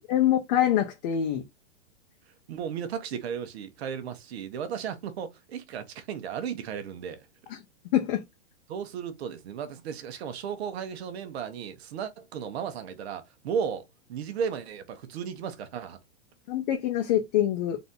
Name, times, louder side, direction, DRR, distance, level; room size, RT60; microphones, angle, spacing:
voice 1, 0.1-1.4 7.5-7.6 7.9-8.2 16.5-17.8, left 11 dB, 35° left, 0.7 m, -25 dB
voice 2, 2.5-7.3 8.7-16.0, right 7 dB, 55° right, 1.1 m, -35 dB
4.0 x 2.7 x 3.7 m
hypercardioid pair, 155°, 37 cm